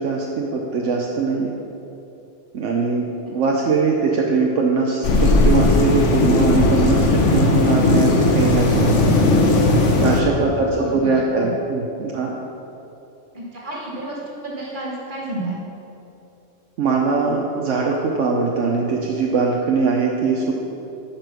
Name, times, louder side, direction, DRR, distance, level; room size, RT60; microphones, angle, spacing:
voice 1, 0.0-1.5 2.5-9.0 10.0-12.3 16.8-20.5, right 4 dB, 75° right, -1 dB, 1.1 m, -21 dB
sound 1, 5.0-10.2, left 2 dB, 75° left, 1.3 m, -17 dB
voice 2, 10.8-11.5 13.3-15.6, right 1 dB, 40° right, -4 dB, 2.0 m, -31 dB
10.0 x 5.1 x 6.1 m, 2.8 s
omnidirectional pair, 1.3 m